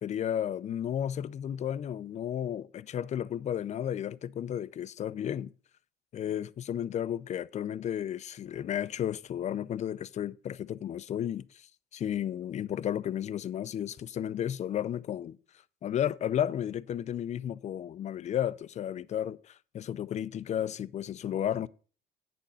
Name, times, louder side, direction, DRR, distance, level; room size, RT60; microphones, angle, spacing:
voice 1, 0.0-5.5 6.1-15.4 15.8-21.7, left 10 dB, 45° left, 0.5 m, -33 dB
8.3 x 6.7 x 5.5 m
cardioid pair, 110°, 17 cm